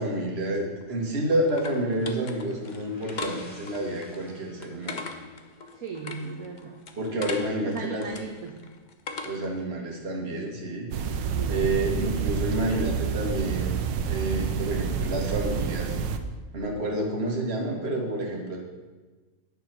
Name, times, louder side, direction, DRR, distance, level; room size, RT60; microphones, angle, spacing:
voice 1, 0.0-5.0 7.0-8.0 9.3-11.2 11.5-13.8 14.1-15.9 16.5-18.6, right 1 dB, 35° right, 0 dB, 1.9 m, -29 dB
sound 1, 0.6-9.6, left 4 dB, 85° left, 0.4 m, -40 dB
sound 2, 2.4-6.2, left 2 dB, 60° left, 3.8 m, -53 dB
voice 2, 5.7-6.9 7.6-8.6 11.3-11.9, right 5 dB, 55° right, 1 dB, 1.3 m, -37 dB
sound 3, 10.9-16.2, right 6 dB, 85° right, 1.4 m, -28 dB
9.4 x 6.8 x 6.0 m, 1.3 s
omnidirectional pair, 1.9 m